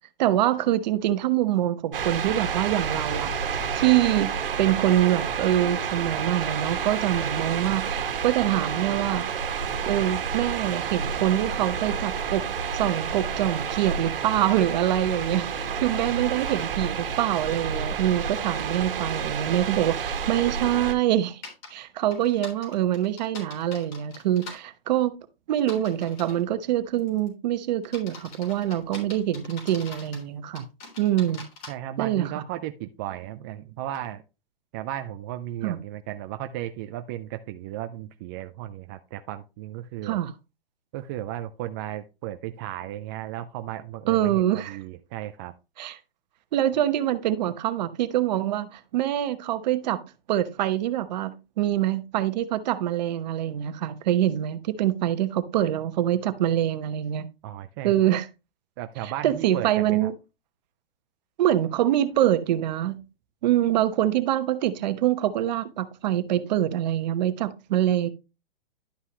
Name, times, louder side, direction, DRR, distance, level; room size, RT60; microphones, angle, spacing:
voice 1, 0.2-3.3 3.7-4.3 4.6-9.2 9.8-12.5 12.7-21.4 21.7-25.2 25.5-30.6 31.0-31.4 32.0-32.3 35.6-35.8 40.0-40.3 44.1-44.8 45.8-46.0 46.5-50.0 50.3-51.3 51.6-57.3 57.8-58.3 59.0-60.1 61.4-63.0 63.4-68.1, right 12 dB, 45° right, 1.1 m, -25 dB
sound 1, 1.9-20.9, right 6 dB, 65° right, 1.6 m, -30 dB
sound 2, 21.4-21.7 22.1-24.6 25.6-26.4 27.0-27.3 27.8-30.2 30.5-31.7, left 3 dB, 35° left, 3.6 m, -43 dB
voice 2, 31.7-34.2 34.7-40.2 40.9-45.5 57.4-57.9 58.8-60.1, right 13 dB, 25° right, 0.4 m, -35 dB
11.5 x 5.5 x 3.1 m
hypercardioid pair, 135°, 29 cm